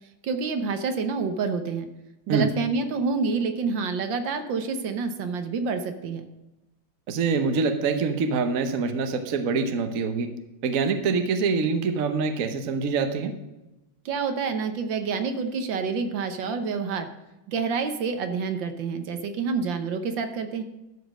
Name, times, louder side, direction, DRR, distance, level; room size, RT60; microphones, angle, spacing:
voice 1, 0.2-1.9 2.3-6.3 14.0-17.1 17.5-20.6, right 5 dB, 70° right, 8 dB, 1.6 m, -28 dB
voice 2, 7.1-10.3 10.6-13.3, right 5 dB, 50° right, 8 dB, 1.1 m, -25 dB
12.5 x 5.1 x 6.4 m, 0.98 s
omnidirectional pair, 2.2 m